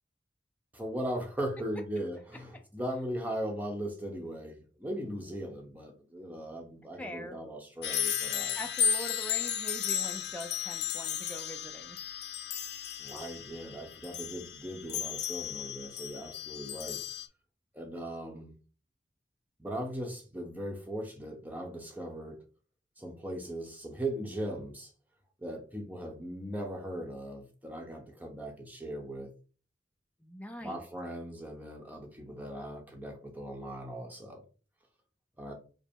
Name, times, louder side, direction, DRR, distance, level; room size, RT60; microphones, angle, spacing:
voice 1, 0.7-8.6 13.0-17.0 17.7-18.5 19.6-22.4 23.0-24.9 25.4-29.3 30.6-34.4 35.4-35.5, right 1 dB, 10° right, 0.9 m, -38 dB
voice 2, 7.0-7.4 8.5-12.0 30.2-30.8, equal, 5° left, 0.5 m, -43 dB
sound 1, 7.8-17.3, left 9 dB, 60° left, 0.6 m, -34 dB
5.2 x 2.1 x 4.5 m
head